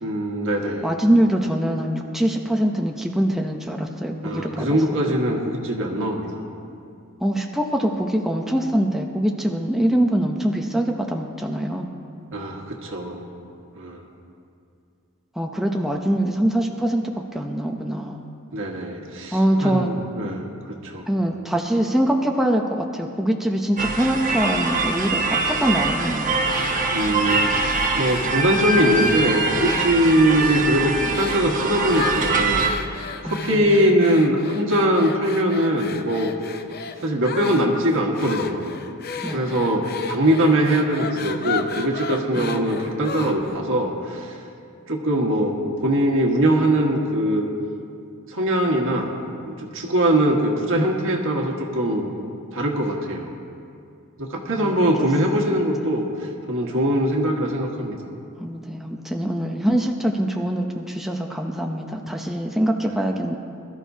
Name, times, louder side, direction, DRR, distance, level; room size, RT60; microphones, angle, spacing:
voice 1, 0.0-0.9 4.2-6.3 12.3-13.2 13.8-14.0 18.5-20.5 20.8-21.1 26.9-32.7 33.2-36.3 37.0-38.8 39.3-44.3 44.9-45.6 45.8-47.5 48.3-49.1 49.4-52.1 52.5-53.3 54.2-56.1 56.5-58.0, right 1 dB, 60° right, 0 dB, 1.5 m, -22 dB
voice 2, 0.8-4.8 7.2-11.9 15.3-18.2 19.3-19.9 21.1-26.4 33.2-33.8 39.2-39.6 42.4-42.9 54.5-54.9 55.4-55.6 58.4-63.3, right 1 dB, ahead, 1 dB, 0.6 m, -23 dB
sound 1, 23.8-32.7, right 3 dB, 35° right, 1.0 m, -23 dB
sound 2, 26.5-29.2 29.5-30.0 30.3-30.7 31.1-31.5 31.9-43.6, left 5 dB, 45° left, 0.6 m, -34 dB
21.5 x 13.0 x 2.8 m, 2.5 s
head